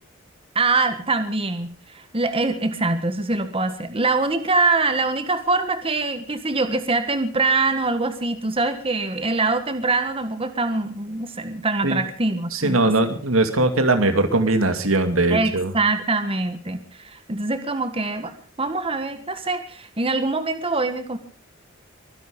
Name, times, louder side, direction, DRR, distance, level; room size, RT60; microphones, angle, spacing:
voice 1, 0.5-13.1 15.3-21.2, right 3 dB, 30° right, 9 dB, 1.6 m, -24 dB
voice 2, 12.5-15.7, right 2 dB, 85° right, 8 dB, 2.5 m, -20 dB
23.5 x 11.0 x 5.3 m, 0.42 s
head